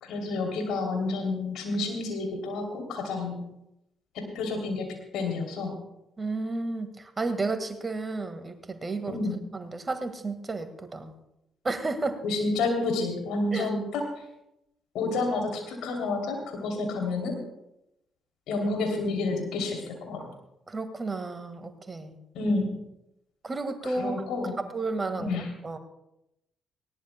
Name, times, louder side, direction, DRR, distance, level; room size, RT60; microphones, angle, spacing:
voice 1, 0.0-3.4 4.1-5.7 9.1-9.4 12.2-14.0 14.9-17.4 18.5-20.3 22.3-22.7 24.0-24.6 25.2-25.5, left 3 dB, 65° left, 2 dB, 3.0 m, -29 dB
voice 2, 6.2-9.2 9.5-11.2 11.6-12.2 13.5-13.7 20.7-22.2 23.4-24.2 24.7-25.8, right 3 dB, 30° right, 9 dB, 1.7 m, -32 dB
19.5 x 17.5 x 2.2 m, 0.86 s
hypercardioid pair, 45°, 0 cm